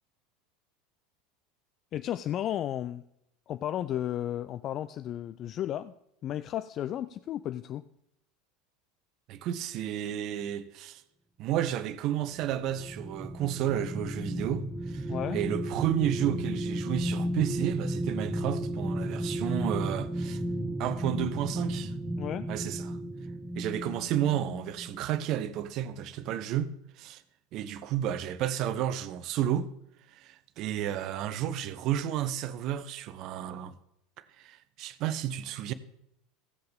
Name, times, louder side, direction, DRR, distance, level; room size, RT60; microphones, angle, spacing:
voice 1, 1.9-3.0 3.5-5.9 6.2-7.9 15.1-15.4 22.2-22.5, left 11 dB, 40° left, 0.4 m, -33 dB
voice 2, 9.3-11.0 11.4-15.1 15.3-20.4 20.8-21.9 22.5-23.0 23.5-27.2 27.5-29.7 30.1-33.8 34.4-35.7, right 11 dB, 50° right, 0.8 m, -32 dB
sound 1, 12.3-25.0 25.5-25.6, equal, 10° right, 0.9 m, -34 dB
16.5 x 7.7 x 3.5 m
figure-of-eight pair, 75°, 0 cm